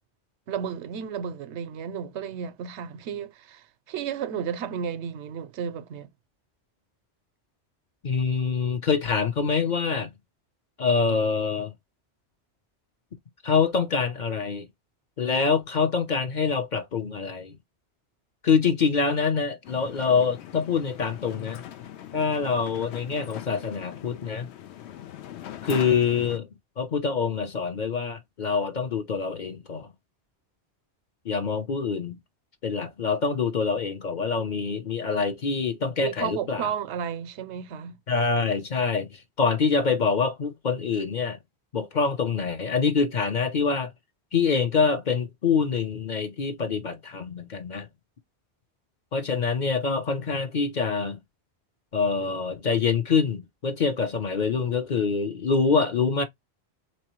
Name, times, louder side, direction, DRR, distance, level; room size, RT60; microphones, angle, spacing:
voice 1, 0.5-6.1 36.0-38.0, right 8 dB, 85° right, 0.9 m, -33 dB
voice 2, 8.0-10.1 10.8-11.7 13.4-14.7 15.2-17.6 18.4-21.6 22.1-24.5 25.6-26.5 26.8-29.9 31.2-32.2 32.6-36.7 38.1-41.4 41.7-43.9 44.3-47.9 49.1-51.2 51.9-56.2, left 5 dB, 50° left, 0.7 m, -25 dB
sound 1, 19.6-26.4, left 11 dB, 80° left, 0.9 m, -41 dB
3.6 x 3.0 x 2.9 m
omnidirectional pair, 1.1 m